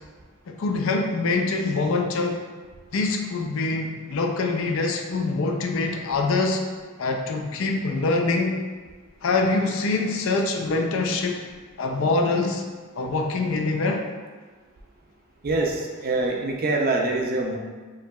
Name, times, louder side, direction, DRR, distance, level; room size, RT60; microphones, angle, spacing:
voice 1, 0.5-2.4 2.9-6.6 7.0-8.5 9.2-11.4 11.8-12.6 12.9-14.0, left 3 dB, 60° left, 3 dB, 0.4 m, -24 dB
voice 2, 15.4-17.6, right 2 dB, 40° right, 1 dB, 0.4 m, -24 dB
4.6 x 2.8 x 2.3 m, 1.4 s
head